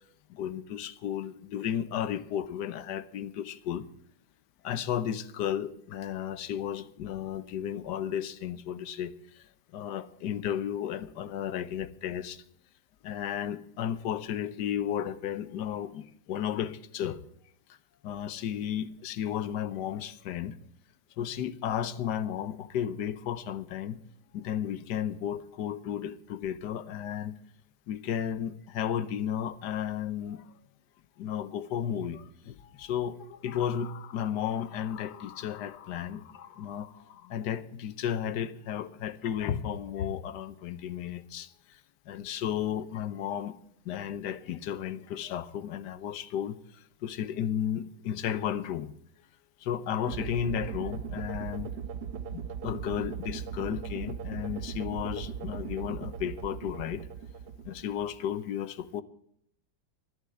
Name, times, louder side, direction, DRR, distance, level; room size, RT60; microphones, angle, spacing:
voice 1, 0.3-3.8 4.6-9.1 9.7-12.4 13.0-16.0 16.3-17.2 18.0-20.6 21.2-24.0 24.3-27.3 27.9-30.4 31.2-32.2 32.5-33.2 33.4-36.2 36.6-36.9 37.3-41.5 42.1-43.5 43.9-46.6 47.0-48.9 49.6-51.7 52.3-57.0 57.7-59.0, left 9 dB, 70° left, 1.3 m, -33 dB
sound 1, 30.1-30.3 32.1-32.3 33.2-37.5 38.7-38.8 39.2-40.3, left 8 dB, 85° left, 1.5 m, -42 dB
sound 2, 50.1-58.3, right 7 dB, 70° right, 1.2 m, -38 dB
11.5 x 11.5 x 7.9 m
omnidirectional pair, 2.0 m